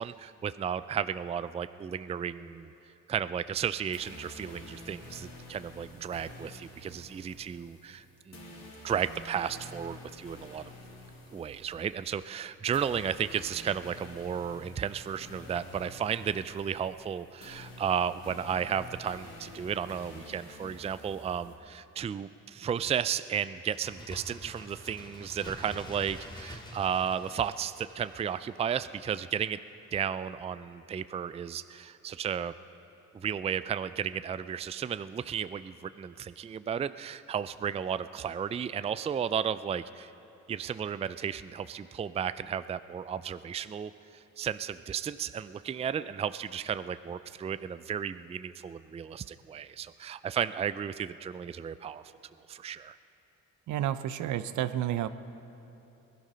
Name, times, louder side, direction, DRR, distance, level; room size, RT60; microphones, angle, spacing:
voice 1, 0.0-2.7 3.1-10.6 11.3-29.6 29.9-32.5 33.1-40.1 40.5-52.0 52.5-53.0, right 8 dB, 20° right, 14 dB, 0.4 m, -34 dB
sound 1, 3.9-21.5, left 2 dB, 60° left, 2.9 m, -49 dB
Bird, 23.6-29.1 29.4-29.5, left 1 dB, 15° left, 2.1 m, -47 dB
voice 2, 53.7-55.1, right 11 dB, 75° right, 13 dB, 0.7 m, -30 dB
20.5 x 12.5 x 5.6 m, 2.9 s
cardioid pair, 90°, 30 cm